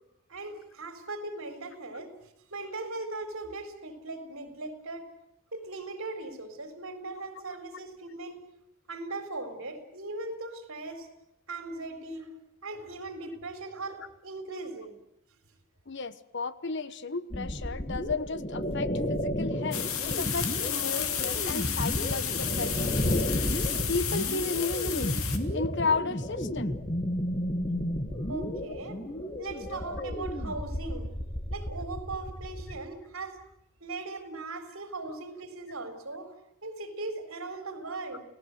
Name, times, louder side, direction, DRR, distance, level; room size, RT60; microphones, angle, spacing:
voice 1, 0.3-2.2 2.5-5.1 5.5-8.4 8.9-11.1 11.5-12.3 12.6-15.0 28.3-29.0 29.4-31.1 31.5-33.4 33.8-36.3 36.6-38.2, right 2 dB, 70° right, 8 dB, 4.2 m, -39 dB
voice 2, 15.9-23.2 23.9-25.2 25.5-26.8, left 4 dB, 55° left, 15 dB, 1.1 m, -33 dB
sound 1, 17.3-32.8, equal, 30° left, 1.9 m, -32 dB
sound 2, 19.7-25.4, left 9 dB, 80° left, 2.5 m, -32 dB
29.5 x 17.5 x 8.0 m, 0.79 s
head